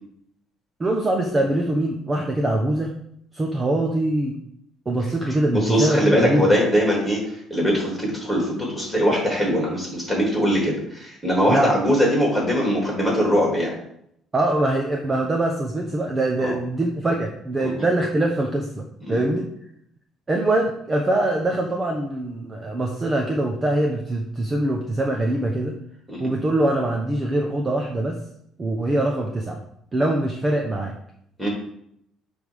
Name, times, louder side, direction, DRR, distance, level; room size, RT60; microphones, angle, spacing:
voice 1, 0.8-3.0 3.3-4.4 4.9-6.5 11.5-11.7 14.3-19.5 20.3-25.8 26.2-28.2 28.6-29.6 29.9-31.0, right 1 dB, 20° right, 1 dB, 0.9 m, -23 dB
voice 2, 5.5-13.8 16.4-16.5 17.6-17.7 19.0-19.2 26.1-26.3 31.4-31.5, equal, ahead, -3 dB, 3.5 m, -21 dB
8.9 x 3.5 x 6.4 m, 0.72 s
cardioid pair, 145°, 0 cm